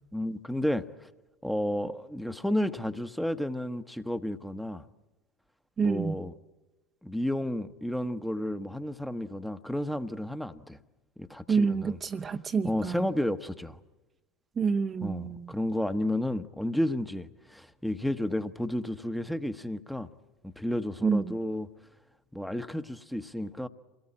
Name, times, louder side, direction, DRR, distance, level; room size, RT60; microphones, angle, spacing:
voice 1, 0.1-1.1 1.4-4.8 5.8-6.3 7.0-10.8 11.2-12.0 12.6-13.8 15.0-20.1 20.6-21.7 22.3-23.7, left 1 dB, ahead, 1.0 m, -32 dB
voice 2, 5.8-6.1 11.5-13.1 14.6-15.5 21.0-21.4, right 5 dB, 30° right, 0.8 m, -28 dB
28.0 x 18.5 x 8.7 m
hypercardioid pair, 75°, 0 cm